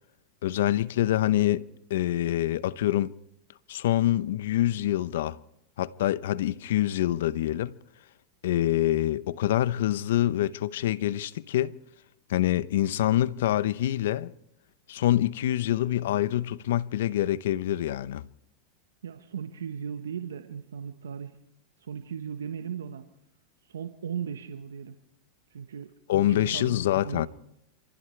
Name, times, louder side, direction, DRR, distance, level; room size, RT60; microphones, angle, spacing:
voice 1, 0.4-3.1 3.7-5.4 5.8-7.7 8.4-11.8 12.3-14.3 14.9-18.3 26.1-27.3, left 13 dB, 75° left, 0.7 m, -26 dB
voice 2, 19.0-21.4 21.8-23.0 23.7-24.9 25.5-25.9 26.3-26.8 27.0-27.3, right 7 dB, 85° right, 1.2 m, -37 dB
27.5 x 15.5 x 3.3 m
hypercardioid pair, 105°, 0 cm